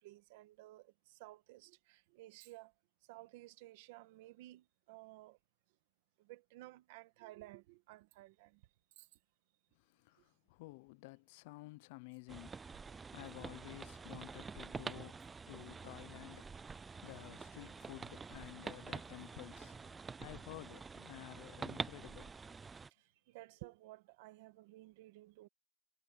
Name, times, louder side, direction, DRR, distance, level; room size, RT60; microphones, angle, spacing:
voice 1, 0.0-2.7 3.1-5.4 6.2-8.6 9.0-9.1 13.1-13.3 23.3-25.5, right 18 dB, 85° right, 1.3 m, -55 dB
voice 2, 9.7-22.3, left 24 dB, 80° left, 0.5 m, -53 dB
sound 1, 12.3-22.9, right 4 dB, 15° right, 0.3 m, -47 dB
cardioid pair, 160°, 0 cm